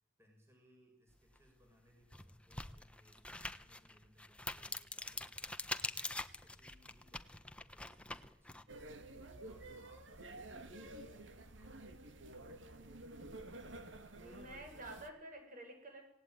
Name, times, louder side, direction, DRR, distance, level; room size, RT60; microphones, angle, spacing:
voice 1, 0.2-12.6, equal, 15° right, 2 dB, 6.4 m, -69 dB
sound 1, 1.4-1.5 2.0-8.6, left 2 dB, 5° left, 1.2 m, -44 dB
sound 2, 8.7-15.1, right 2 dB, 65° right, 2.5 m, -51 dB
voice 2, 14.2-16.0, right 1 dB, 40° right, 4 dB, 7.8 m, -50 dB
27.0 x 19.0 x 9.3 m, 0.70 s
head